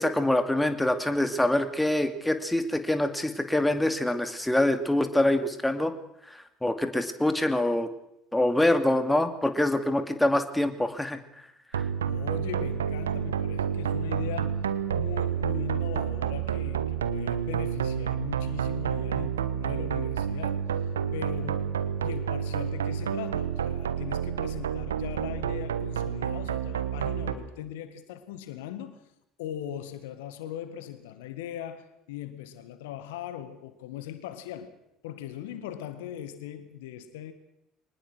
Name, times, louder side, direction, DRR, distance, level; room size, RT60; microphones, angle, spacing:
voice 1, 0.0-5.9 6.3-7.9 8.3-11.2 11.7-11.8, left 1 dB, 10° left, 2.6 m, -25 dB
sound 1, 11.7-27.3, right 8 dB, 85° right, 1.2 m, -29 dB
voice 2, 12.0-20.9 21.1-29.0 29.4-34.7 35.0-37.3, left 11 dB, 75° left, 1.8 m, -39 dB
24.0 x 20.0 x 6.3 m
hypercardioid pair, 60°, 0 cm